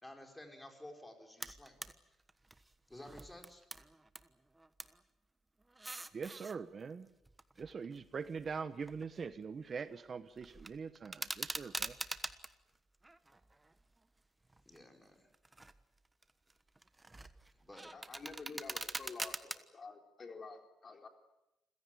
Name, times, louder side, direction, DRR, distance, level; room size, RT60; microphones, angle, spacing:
voice 1, 0.0-1.8 2.9-3.6 14.6-15.3 17.6-17.9, left 1 dB, 10° left, 4 dB, 4.9 m, -53 dB
sound 1, 1.4-1.9 2.3-4.3 4.5-5.0 5.6-6.5 7.2-9.4 9.6-10.0 10.4-12.5 13.0-14.0 14.5-14.8 15.3-15.8 16.2-19.6, right 2 dB, 15° right, 1.3 m, -45 dB
voice 2, 6.1-7.1 7.6-11.9, right 5 dB, 45° right, 14 dB, 1.0 m, -43 dB
voice 3, 17.9-21.1, left 4 dB, 40° left, 5 dB, 3.8 m, -49 dB
27.5 x 16.5 x 9.2 m, 0.92 s
cardioid pair, 90°, 0 cm